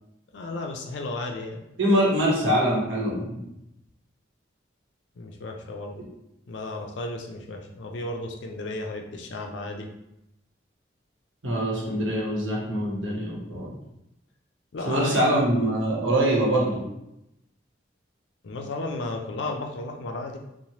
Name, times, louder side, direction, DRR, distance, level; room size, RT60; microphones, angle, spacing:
voice 1, 0.3-1.6 5.2-6.0 6.5-9.9 14.7-15.3 18.4-20.4, left 2 dB, 70° left, 2 dB, 0.4 m, -34 dB
voice 2, 1.8-3.4 11.4-13.7 14.9-16.8, right 1 dB, 90° right, -4 dB, 1.0 m, -24 dB
3.1 x 2.1 x 2.8 m, 0.85 s
head